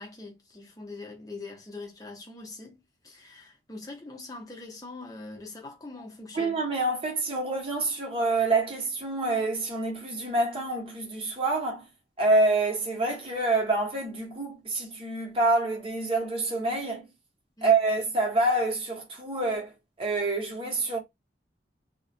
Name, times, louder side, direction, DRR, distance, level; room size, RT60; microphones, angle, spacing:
voice 1, 0.0-6.6 17.6-17.7, left 3 dB, 20° left, 0.7 m, -43 dB
voice 2, 6.3-11.8 12.2-17.1 17.6-19.7 20.0-21.0, right 2 dB, 30° right, 0.8 m, -27 dB
2.3 x 2.1 x 2.5 m
head